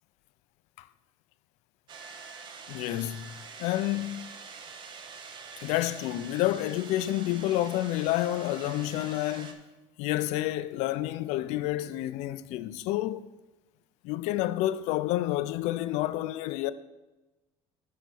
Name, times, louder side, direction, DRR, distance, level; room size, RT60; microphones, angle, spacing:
sound 1, 1.9-9.5, right 5 dB, 45° right, 0.8 m, -45 dB
voice 1, 2.7-3.3 3.6-4.3 5.6-9.6 10.0-13.3 14.0-16.7, left 15 dB, 85° left, 0.4 m, -29 dB
8.8 x 4.1 x 6.2 m
cardioid pair, 145°, 11 cm